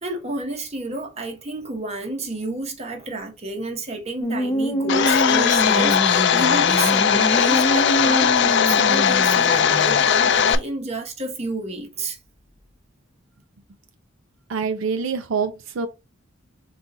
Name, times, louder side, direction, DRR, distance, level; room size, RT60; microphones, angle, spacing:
voice 1, 0.0-12.2, right 2 dB, 35° right, 0.9 m, -30 dB
sound 1, 4.2-10.1, equal, 15° left, 0.7 m, -25 dB
Domestic sounds home sounds, 4.9-10.6, left 8 dB, 60° left, 0.4 m, -18 dB
voice 2, 14.5-15.9, right 5 dB, 85° right, 0.5 m, -25 dB
3.8 x 2.5 x 4.0 m
head